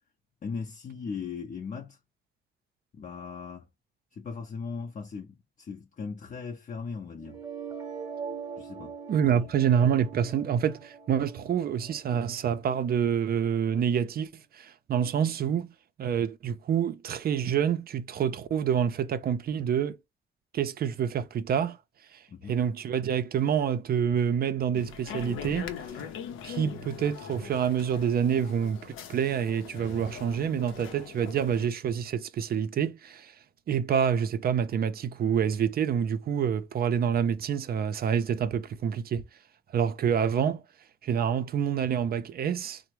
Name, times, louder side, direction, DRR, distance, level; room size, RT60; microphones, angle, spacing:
voice 1, 0.4-2.0 2.9-3.7 4.1-7.4 8.6-8.9 9.2-9.3 12.1-12.2 22.3-22.6, left 5 dB, 40° left, 0.5 m, -38 dB
sound 1, 7.2-13.2, right 6 dB, 20° right, 0.8 m, -42 dB
voice 2, 9.1-20.0 20.5-21.8 22.1-22.2 22.5-25.7 26.4-33.3 33.7-39.2 39.7-40.6 41.0-42.8, right 8 dB, 50° right, 0.5 m, -27 dB
sound 2, 24.7-31.7, left 7 dB, 90° left, 0.6 m, -41 dB
3.3 x 2.1 x 3.0 m
cardioid pair, 90°, 20 cm